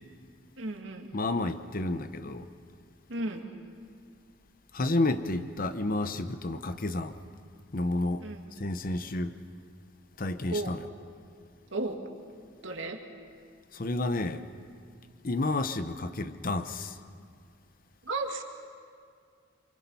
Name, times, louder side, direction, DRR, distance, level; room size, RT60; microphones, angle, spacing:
voice 1, 0.6-1.1 3.1-3.4 8.2-8.5 10.5-10.7 11.7-12.0 12.6-13.0 18.0-18.4, right 2 dB, 80° right, 3 dB, 2.2 m, -34 dB
voice 2, 1.1-2.5 4.7-7.2 7.7-8.3 8.6-9.4 10.2-10.8 13.7-14.4 15.2-17.0, left 2 dB, 45° left, 10 dB, 0.9 m, -30 dB
27.5 x 24.5 x 5.6 m, 2.2 s
head